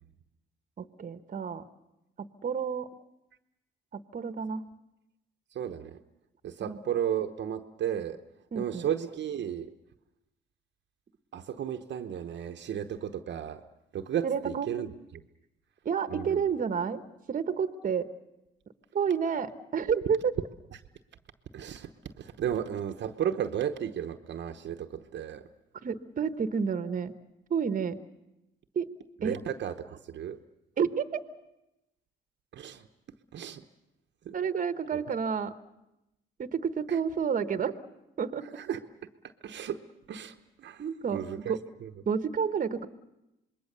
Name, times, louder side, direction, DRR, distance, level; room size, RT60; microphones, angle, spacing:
voice 1, 0.8-1.6 2.2-2.9 3.9-4.6 6.6-6.8 8.5-8.9 14.2-14.7 15.8-17.0 17.3-18.1 18.9-20.3 25.8-27.1 27.5-28.0 28.7-28.9 29.2-29.4 30.8-31.2 34.3-35.5 36.4-37.7 38.2-38.5 40.8-41.2 41.5-41.6 42.1-42.9, right 6 dB, 45° right, 10 dB, 1.2 m, -30 dB
voice 2, 5.5-6.0 6.4-8.2 8.5-9.7 11.3-13.6 13.9-14.9 16.1-16.4 21.5-25.5 29.2-30.4 32.5-32.9 33.3-33.6 34.2-34.4 36.9-37.0 38.6-38.8 39.4-39.8 40.1-40.8 41.1-41.5 41.8-41.9, right 9 dB, 65° right, 6 dB, 1.0 m, -34 dB
26.5 x 21.5 x 6.8 m, 0.93 s
cardioid pair, 90°, 20 cm